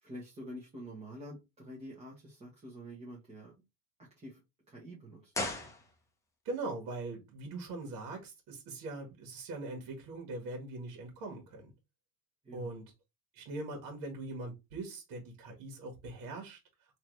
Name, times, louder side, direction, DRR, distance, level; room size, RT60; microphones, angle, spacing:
voice 1, 0.0-3.6 4.0-4.4 4.7-5.3 12.4-12.7, equal, 15° right, 1.3 m, -47 dB
sound 1, 5.3-6.4 6.7-6.8, left 2 dB, 5° left, 0.8 m, -38 dB
voice 2, 6.5-11.7 12.5-12.8 13.3-16.6, right 2 dB, 50° right, 1.7 m, -41 dB
3.8 x 3.1 x 3.2 m
supercardioid pair, 145°, 41 cm